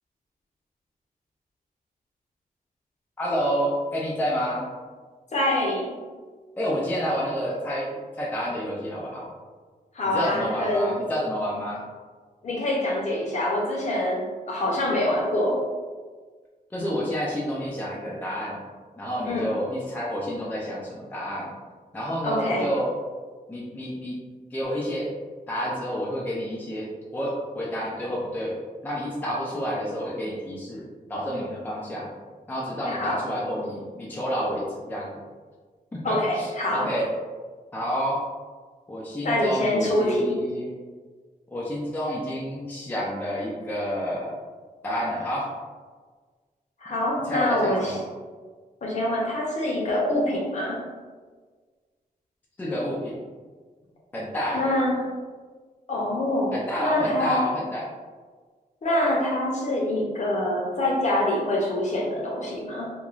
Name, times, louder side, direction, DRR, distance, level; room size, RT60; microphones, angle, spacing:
voice 1, 3.2-4.7 6.6-9.3 10.1-11.8 16.7-18.6 19.0-21.5 21.9-22.9 23.5-24.2 24.5-25.1 25.5-28.6 28.8-32.1 32.5-35.3 35.9-37.1 37.7-38.2 38.9-40.7 41.5-44.3 44.8-45.5 47.3-48.0 52.6-53.2 54.1-54.6 56.5-57.8, equal, 10° left, -5 dB, 0.4 m, -29 dB
voice 2, 5.3-6.0 9.9-10.9 12.4-15.6 19.3-19.6 22.2-22.7 32.9-33.2 36.0-36.9 39.2-40.4 46.8-48.0 48.8-50.8 54.5-55.0 55.9-57.5 58.8-62.9, left 1 dB, 50° left, -3 dB, 0.7 m, -25 dB
3.0 x 2.2 x 2.4 m, 1.5 s
wide cardioid pair, 145°, 16 cm